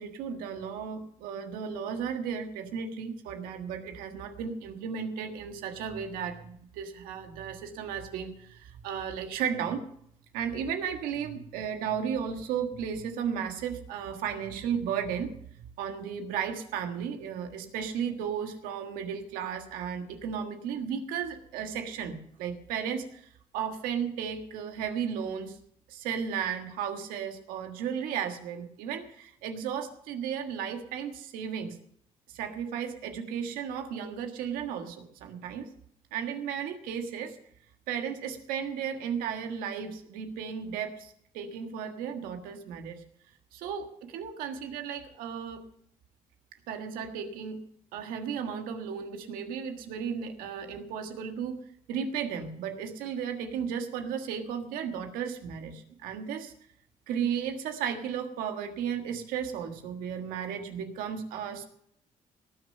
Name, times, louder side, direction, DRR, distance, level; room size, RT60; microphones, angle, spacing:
voice 1, 0.0-9.8 10.3-25.6 25.9-31.8 32.3-35.7 36.1-37.4 37.9-43.0 43.5-45.6 46.7-47.6 47.9-51.6 51.9-56.5 57.1-61.6, right 7 dB, 85° right, 6 dB, 1.6 m, -34 dB
18.5 x 6.5 x 6.6 m, 0.69 s
supercardioid pair, 65°, 14 cm